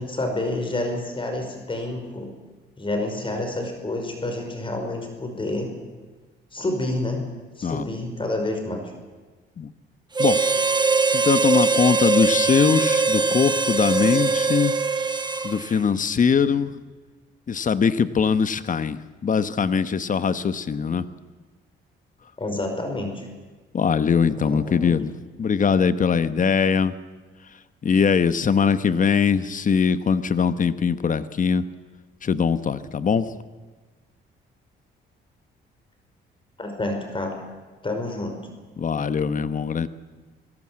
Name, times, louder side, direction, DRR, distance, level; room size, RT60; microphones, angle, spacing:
voice 1, 0.0-2.3 2.8-5.7 6.5-7.3 7.6-8.9 22.4-23.3 24.4-25.0 36.6-37.3 37.8-38.4, left 2 dB, 25° left, 4 dB, 5.3 m, -28 dB
Harmonica, 10.1-15.8, right 4 dB, 20° right, 1.1 m, -22 dB
voice 2, 11.1-14.8 15.4-16.7 17.5-21.0 23.7-25.1 25.4-26.9 27.8-31.6 32.2-33.3 38.8-39.9, left 6 dB, 40° left, 13 dB, 1.2 m, -21 dB
25.5 x 17.5 x 7.7 m, 1.3 s
cardioid pair, 90°, 20 cm